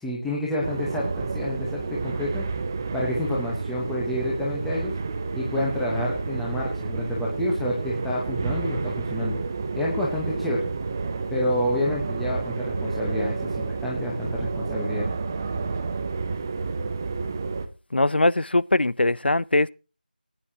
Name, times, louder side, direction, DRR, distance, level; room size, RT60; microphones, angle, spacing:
voice 1, 0.0-2.5 2.9-4.9 5.3-9.4 9.8-10.6 11.3-15.1, left 1 dB, ahead, 1.1 m, -28 dB
sound 1, 0.6-17.7, right 4 dB, 15° right, 0.6 m, -30 dB
voice 2, 17.9-19.7, left 2 dB, 90° left, 0.6 m, -21 dB
19.5 x 9.8 x 2.9 m
figure-of-eight pair, 175°, 5 cm